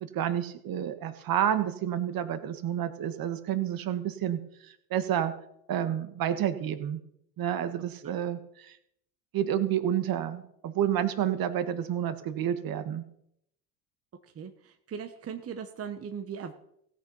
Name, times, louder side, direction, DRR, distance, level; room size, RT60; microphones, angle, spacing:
voice 1, 0.0-4.4 4.7-5.3 5.7-7.0 7.4-8.8 9.3-13.0, right 10 dB, 50° right, 11 dB, 1.5 m, -29 dB
voice 2, 14.3-16.5, right 7 dB, 30° right, 7 dB, 1.1 m, -39 dB
16.5 x 6.6 x 5.6 m, 0.73 s
hypercardioid pair, 75°, 46 cm